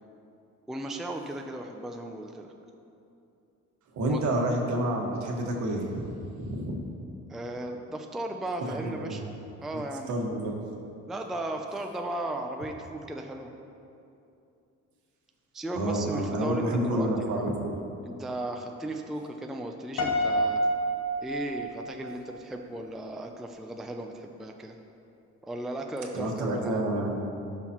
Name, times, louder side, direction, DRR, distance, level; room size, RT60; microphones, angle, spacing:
voice 1, 0.7-2.5 4.1-4.2 7.3-9.3 9.6-10.1 11.1-13.5 15.5-17.5 18.0-20.6 21.2-24.8 25.4-27.0, right 1 dB, ahead, 3 dB, 0.4 m, -36 dB
voice 2, 3.9-6.1 6.4-6.8 8.7-9.2 9.7-9.8 10.1-10.5 15.7-17.7 26.1-27.2, right 1 dB, 70° right, 0 dB, 1.5 m, -29 dB
Piano, 20.0-22.2, right 1 dB, 55° left, 1.0 m, -28 dB
16.0 x 5.9 x 3.0 m, 2.7 s
cardioid pair, 150°, 30 cm